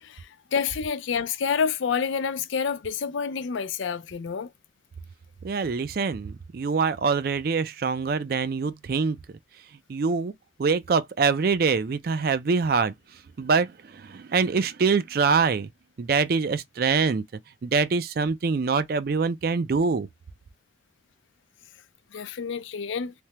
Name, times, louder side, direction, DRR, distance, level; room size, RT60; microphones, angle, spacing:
voice 1, 0.0-4.5 22.1-23.1, left 6 dB, 80° left, 0.4 m, -28 dB
voice 2, 5.4-9.2 9.9-10.3 10.6-12.9 13.4-15.7 16.0-17.2 17.6-20.1, right 5 dB, 50° right, 0.4 m, -24 dB
3.4 x 2.1 x 2.8 m
head